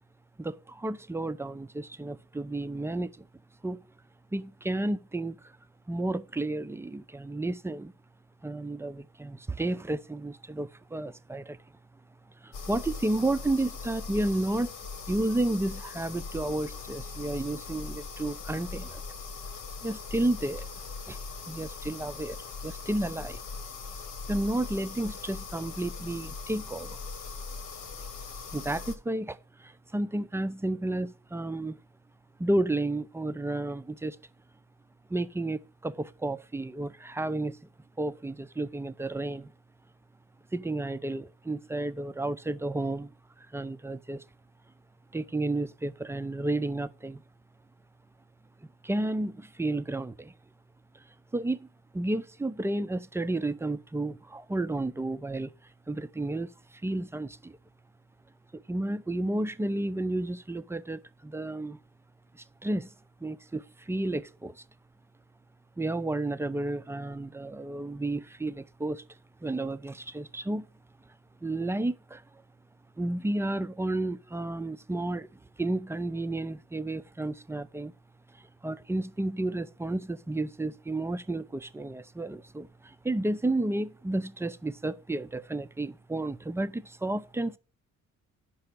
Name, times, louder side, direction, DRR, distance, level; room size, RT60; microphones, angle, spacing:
voice 1, 0.4-3.3 3.6-3.8 4.3-5.5 5.9-7.9 8.4-11.6 12.4-14.7 15.1-19.0 19.8-20.7 21.1-21.2 21.5-22.4 22.6-23.4 24.3-27.0 28.5-31.8 32.4-34.2 35.1-37.6 38.0-39.5 40.5-44.2 45.1-47.2 48.8-50.3 50.9-51.0 51.3-51.7 51.9-55.5 55.9-57.6 58.5-61.8 62.3-62.9 63.2-64.6 65.8-69.0 69.4-70.7 71.4-72.2 73.0-77.9 78.3-87.6, right 2 dB, 10° right, 0.4 m, -32 dB
sound 1, 12.5-29.0, left 4 dB, 85° left, 1.2 m, -40 dB
5.7 x 5.4 x 6.5 m
cardioid pair, 90°, 30 cm